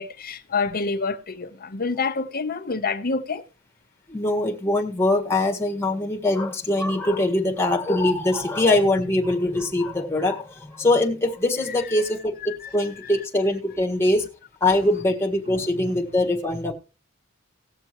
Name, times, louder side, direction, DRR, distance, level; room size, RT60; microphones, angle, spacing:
voice 1, 0.0-3.4 11.9-12.0 12.6-12.7 15.6-15.9, left 4 dB, 45° left, 0.9 m, -28 dB
voice 2, 4.1-14.2 14.6-16.7, left 1 dB, 10° left, 1.7 m, -22 dB
18.5 x 6.9 x 3.0 m
head